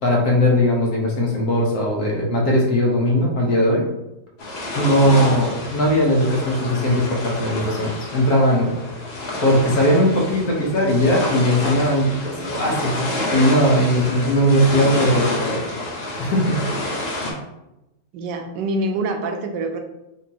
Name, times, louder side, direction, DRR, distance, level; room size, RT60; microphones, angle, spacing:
voice 1, 0.0-3.9 4.7-8.7 9.4-15.6 16.2-16.6, equal, 65° left, -2 dB, 1.4 m, -19 dB
sound 1, 4.4-17.3, left 1 dB, 50° left, 0.8 m, -28 dB
voice 2, 18.1-19.8, right 2 dB, 85° right, 4 dB, 1.3 m, -25 dB
5.2 x 2.8 x 2.8 m, 0.93 s
omnidirectional pair, 1.9 m